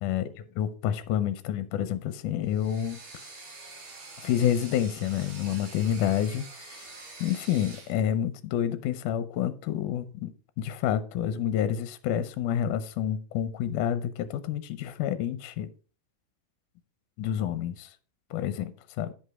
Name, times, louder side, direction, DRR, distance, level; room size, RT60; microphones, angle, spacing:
voice 1, 0.6-3.0 4.2-6.9 7.2-10.3 10.6-15.7 17.2-17.9 18.3-19.1, left 10 dB, 75° left, 2.2 m, -28 dB
sound 1, 2.5-8.0, right 3 dB, 65° right, 4.1 m, -46 dB
10.0 x 5.3 x 4.7 m
omnidirectional pair, 3.8 m